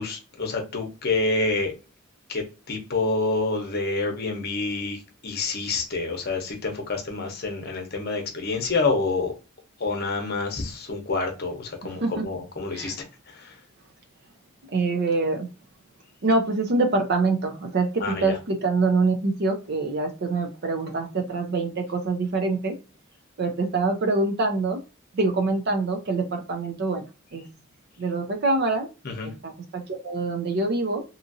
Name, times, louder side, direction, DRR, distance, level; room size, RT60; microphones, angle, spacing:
voice 1, 0.0-1.7 2.3-9.3 9.8-13.6 18.0-18.3 29.0-29.3, left 3 dB, 50° left, 0.8 m, -28 dB
voice 2, 12.0-12.3 12.7-12.9 14.7-15.5 16.2-22.8 23.4-24.8 25.1-27.1 27.3-27.4 28.0-28.9 29.2-31.0, right 3 dB, 50° right, 0.5 m, -25 dB
2.8 x 2.5 x 2.6 m
head